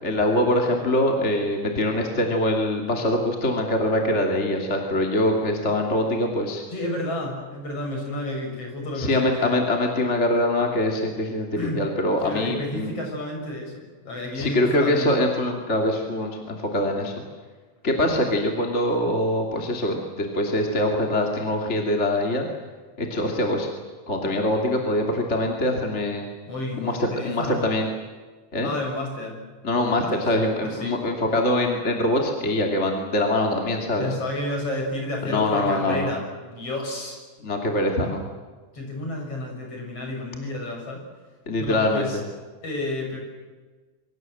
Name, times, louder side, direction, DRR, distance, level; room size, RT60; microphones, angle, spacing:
voice 1, 0.0-6.6 9.0-11.5 11.7-12.9 14.3-17.1 17.8-22.5 23.0-23.7 24.1-26.3 26.8-27.9 28.5-28.7 29.6-34.1 35.2-36.1 37.4-38.2 41.5-42.1, left 1 dB, 20° left, 1 dB, 2.7 m, -23 dB
voice 2, 6.7-9.7 11.6-11.8 12.2-15.1 26.5-27.8 28.6-29.4 29.9-31.0 33.7-37.2 38.7-41.0 41.6-42.2 42.6-43.2, left 1 dB, 45° left, 1 dB, 7.6 m, -31 dB
27.0 x 25.0 x 7.9 m, 1.3 s
omnidirectional pair, 3.7 m